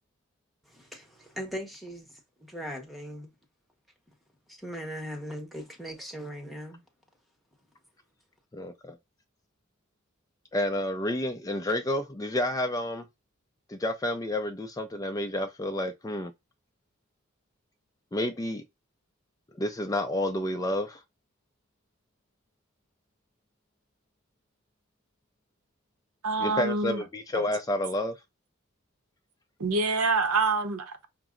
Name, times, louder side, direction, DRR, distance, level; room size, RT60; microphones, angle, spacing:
voice 1, 0.7-2.1 2.4-3.3 4.5-6.8, equal, ahead, 0.8 m, -39 dB
voice 2, 8.5-9.0 10.5-13.1 13.7-16.3 18.1-18.6 19.5-21.0 26.4-28.2, left 1 dB, 15° left, 0.3 m, -30 dB
voice 3, 26.2-27.0 29.6-31.1, right 3 dB, 80° right, 0.8 m, -26 dB
5.8 x 2.0 x 3.7 m
head